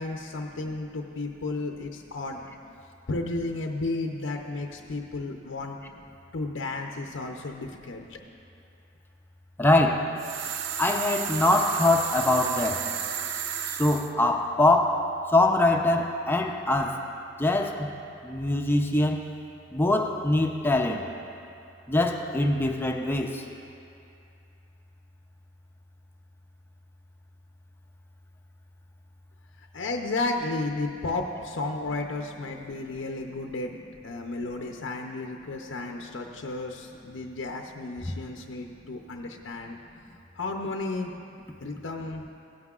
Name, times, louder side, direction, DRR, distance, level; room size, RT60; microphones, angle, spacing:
voice 1, 0.0-2.4 3.1-5.8 6.3-8.2 29.7-33.7 34.0-39.8 40.4-41.1 41.6-42.3, left 2 dB, 85° left, 2 dB, 0.6 m, -33 dB
voice 2, 9.6-10.1 10.8-12.9 13.7-15.1 15.3-17.0 17.4-17.9 18.2-19.3 19.7-21.1 21.9-23.4, left 2 dB, 10° left, 2 dB, 0.5 m, -23 dB
sound 1, 10.2-14.1, right 8 dB, 75° right, 0.5 m, -33 dB
16.5 x 9.5 x 2.4 m, 2.6 s
head